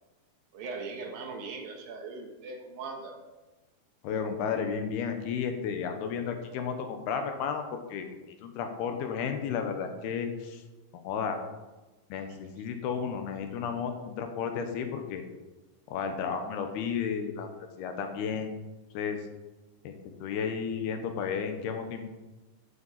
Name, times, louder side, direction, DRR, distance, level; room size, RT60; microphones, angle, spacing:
voice 1, 0.5-3.2, right 4 dB, 70° right, 3 dB, 2.8 m, -39 dB
voice 2, 4.0-8.2 8.4-10.6 10.9-11.4 12.1-15.2 15.9-18.5 18.9-19.2 19.8-22.0, left 6 dB, 80° left, 6 dB, 3.1 m, -33 dB
13.0 x 8.4 x 4.2 m, 1.1 s
omnidirectional pair, 4.5 m